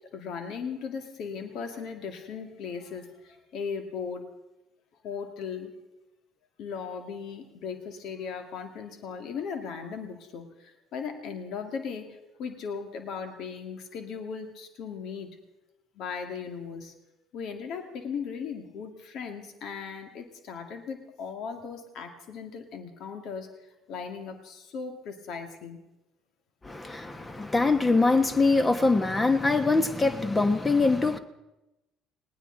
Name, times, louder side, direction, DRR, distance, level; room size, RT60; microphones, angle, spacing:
voice 1, 0.1-4.2 5.0-5.7 6.6-12.1 12.4-15.3 16.0-16.9 17.3-23.5 23.9-25.8, left 6 dB, 60° left, 2.2 m, -37 dB
voice 2, 26.6-31.2, left 3 dB, 20° left, 1.3 m, -23 dB
19.5 x 18.5 x 4.0 m
hypercardioid pair, 55°, 0 cm